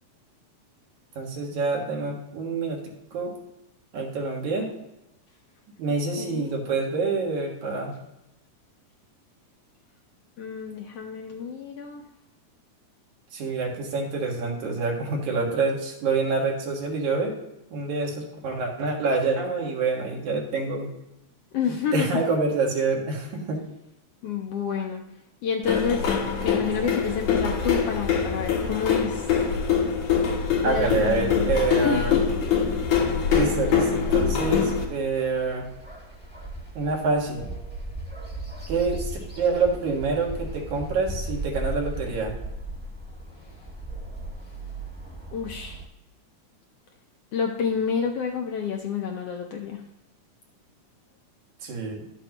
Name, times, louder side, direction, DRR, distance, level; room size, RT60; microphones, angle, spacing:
voice 1, 1.2-2.8 3.1-3.3 3.9-4.7 5.8-7.9 13.3-17.4 17.7-20.9 21.9-23.6 27.6-27.7 30.6-32.2 33.3-35.7 36.7-37.5 38.7-42.3 51.6-52.0, right 4 dB, 75° right, 0 dB, 3.0 m, -26 dB
voice 2, 6.2-6.5 10.4-12.0 21.5-22.1 24.2-25.0 25.4-29.4 30.6-31.5 31.8-32.2 45.3-45.8 47.3-49.8, left 6 dB, 75° left, 2 dB, 1.5 m, -29 dB
sound 1, 25.7-34.8, left 6 dB, 90° left, 3.0 m, -24 dB
sound 2, 27.5-45.9, right 1 dB, 5° right, 1.0 m, -38 dB
12.0 x 8.2 x 2.9 m, 0.92 s
omnidirectional pair, 3.4 m